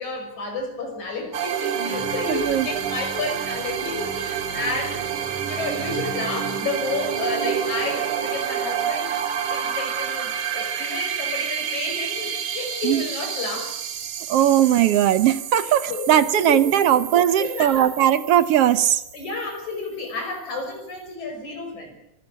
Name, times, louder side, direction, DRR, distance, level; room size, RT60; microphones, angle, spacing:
voice 1, 0.0-5.0 5.3-9.1 9.5-13.8 15.6-16.6 16.9-17.0 17.4-17.9 19.1-21.9, left 3 dB, 75° left, 4 dB, 7.3 m, -31 dB
sound 1, 1.3-19.8, right 8 dB, 80° right, 3.0 m, -29 dB
voice 2, 2.3-2.7 12.8-13.0 14.3-19.0, right 11 dB, 65° right, 13 dB, 1.8 m, -19 dB
24.5 x 14.5 x 10.0 m, 0.81 s
omnidirectional pair, 3.4 m